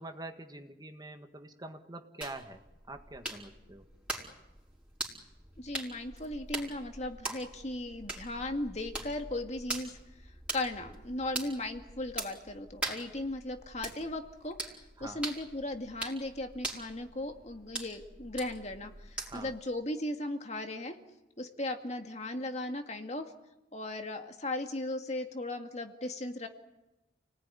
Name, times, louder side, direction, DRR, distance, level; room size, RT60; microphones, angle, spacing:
voice 1, 0.0-2.6 2.9-3.8 15.0-15.2 19.3-19.5, right 2 dB, 20° right, 6 dB, 1.6 m, -45 dB
sound 1, 2.2-19.6, right 2 dB, 5° right, 4.7 m, -42 dB
voice 2, 5.6-9.9 10.5-14.6 15.0-21.0 21.4-23.3 23.7-26.5, left 1 dB, 40° left, 5 dB, 2.1 m, -37 dB
30.0 x 19.0 x 9.9 m, 0.99 s
head